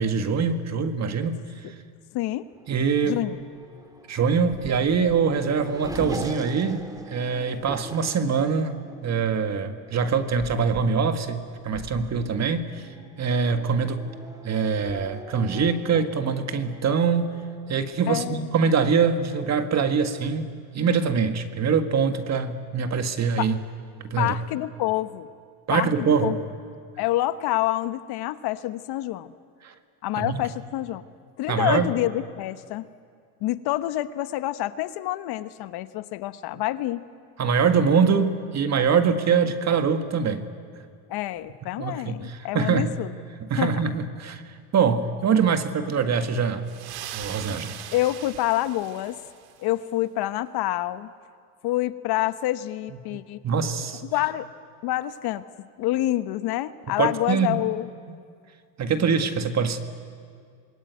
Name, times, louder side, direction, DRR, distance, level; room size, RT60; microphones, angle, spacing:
voice 1, 0.0-1.4 1.7-1.8 2.7-3.2 4.1-12.9 13.2-14.1 14.4-17.3 17.7-23.6 24.0-24.3 25.7-26.4 29.6-29.7 30.2-30.4 31.5-31.9 37.4-40.5 41.8-42.9 43.4-44.4 44.7-46.7 47.1-47.8 53.1-54.0 57.0-57.6 58.8-59.8, right 6 dB, 30° right, 8 dB, 1.8 m, -24 dB
voice 2, 2.1-2.5 3.0-3.4 18.1-18.5 23.4-23.5 24.2-25.3 25.7-26.4 27.0-29.3 30.0-31.0 31.4-32.9 33.4-37.0 41.1-43.1 43.6-43.7 47.9-49.2 49.6-51.1 51.6-53.4 54.1-54.5 54.8-55.4 55.8-57.9, left 15 dB, 50° left, 13 dB, 1.0 m, -27 dB
Race car auto racing / Accelerating revving vroom, 2.5-18.7, right 1 dB, 5° right, 2.0 m, -42 dB
Water Puddle Splash, 46.7-49.7, right 10 dB, 50° right, 2.0 m, -40 dB
26.5 x 21.0 x 9.5 m, 2.2 s
supercardioid pair, 105°, 50 cm